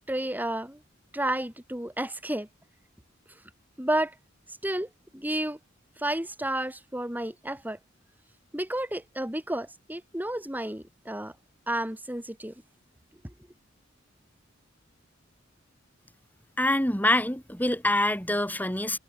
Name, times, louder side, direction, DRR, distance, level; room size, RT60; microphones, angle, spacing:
voice 1, 0.1-0.8 1.1-2.5 3.8-4.2 4.6-5.6 6.0-7.8 8.5-11.3 11.7-12.6 13.2-13.3, right 1 dB, 10° right, 4.1 m, -31 dB
voice 2, 16.6-19.0, left 1 dB, 10° left, 5.9 m, -25 dB
head